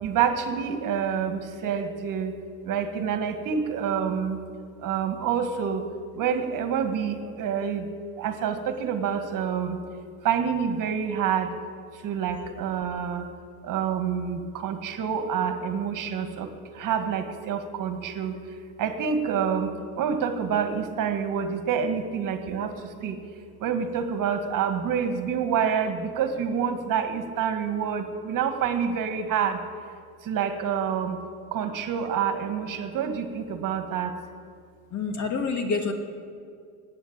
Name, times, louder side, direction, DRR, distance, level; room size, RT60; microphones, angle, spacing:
voice 1, 0.0-2.3 2.7-4.4 4.8-5.8 6.2-7.8 8.2-9.8 10.2-11.5 12.0-13.3 13.6-16.5 16.8-18.3 18.8-22.7 23.0-23.2 23.6-29.6 30.3-31.2 31.5-34.1, right 7 dB, 50° right, 7 dB, 1.9 m, -27 dB
voice 2, 34.9-35.9, left 4 dB, 40° left, 5 dB, 2.4 m, -27 dB
16.0 x 9.7 x 8.9 m, 2.1 s
supercardioid pair, 100°, 41 cm